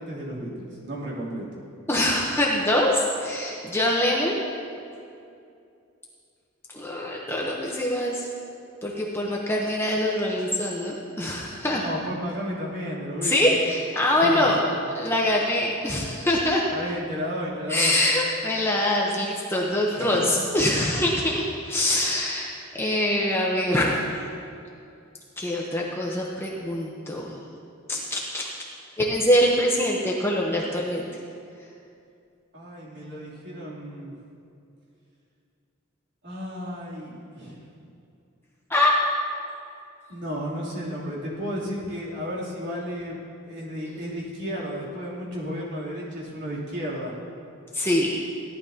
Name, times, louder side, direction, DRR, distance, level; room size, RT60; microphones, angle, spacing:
voice 1, 0.0-1.5 11.6-13.4 14.2-14.9 16.7-18.0 19.9-20.3 32.5-34.1 36.2-37.7 40.1-43.2 43.5-47.2, equal, 60° right, -7 dB, 3.2 m, -33 dB
voice 2, 1.9-4.4 6.7-8.2 8.8-11.8 13.2-14.6 14.9-16.6 17.7-24.1 25.4-27.4 27.9-28.4 29.0-31.1 38.7-38.9 47.7-48.2, left 1 dB, 10° left, -3 dB, 0.9 m, -24 dB
17.5 x 11.5 x 2.9 m, 2.5 s
head